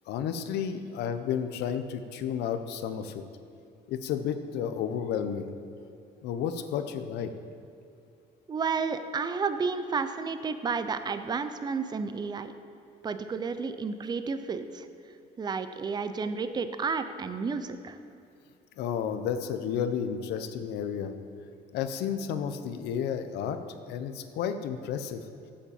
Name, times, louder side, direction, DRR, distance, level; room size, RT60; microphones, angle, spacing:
voice 1, 0.1-3.2 3.9-5.5 6.2-7.3 18.8-21.1 21.7-23.6 23.9-25.2, left 8 dB, 80° left, 9 dB, 0.7 m, -32 dB
voice 2, 8.5-12.5 13.0-14.9 15.4-18.0, right 5 dB, 25° right, 10 dB, 0.5 m, -31 dB
7.5 x 7.2 x 7.0 m, 2.6 s
cardioid pair, 110°, 17 cm